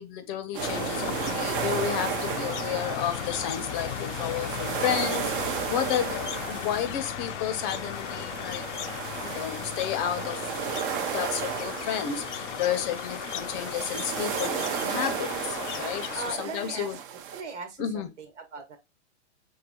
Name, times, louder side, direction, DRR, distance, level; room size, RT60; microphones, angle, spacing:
voice 1, 0.0-8.7 9.2-16.9 17.8-18.1, left 9 dB, 30° left, 0.6 m, -32 dB
sound 1, 0.5-17.4, right 9 dB, 45° right, 0.7 m, -34 dB
sound 2, 0.6-16.4, left 12 dB, 80° left, 0.5 m, -36 dB
voice 2, 16.1-17.0 17.3-18.8, right 4 dB, 85° right, 1.5 m, -39 dB
5.6 x 3.2 x 2.2 m
hypercardioid pair, 140°, 35 cm